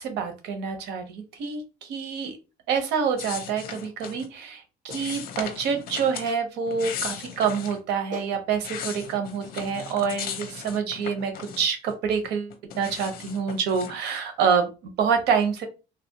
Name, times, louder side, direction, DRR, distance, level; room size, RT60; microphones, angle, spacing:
voice 1, 0.0-2.4 2.7-15.7, right 6 dB, 90° right, 7 dB, 0.8 m, -27 dB
sound 1, 3.2-4.3 4.9-6.3 6.7-7.8 8.3-11.9 12.2-14.0, left 8 dB, 60° left, 0.7 m, -37 dB
Clapping, 4.9-5.1 6.3-6.4 7.7-7.8 8.1-8.4 9.4-9.6, right 2 dB, 50° right, 1.5 m, -41 dB
3.3 x 2.5 x 2.7 m, 0.30 s
cardioid pair, 110°, 17 cm